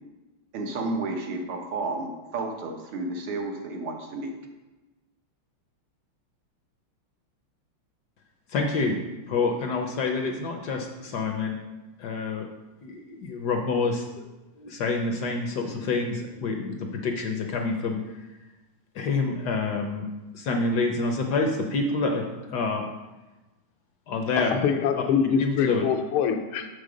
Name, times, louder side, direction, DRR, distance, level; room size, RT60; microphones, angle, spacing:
voice 1, 0.5-4.3, right 2 dB, 75° right, 2.0 m, -31 dB
voice 2, 8.5-9.0 9.3-11.6 12.0-12.5 12.8-14.2 14.6-18.0 18.9-20.1 20.3-22.2 22.5-22.8 24.1-24.5 25.4-25.8, left 3 dB, 65° left, 1.1 m, -27 dB
voice 3, 24.4-26.7, left 7 dB, 80° left, 1.6 m, -24 dB
7.0 x 6.5 x 5.1 m
omnidirectional pair, 2.3 m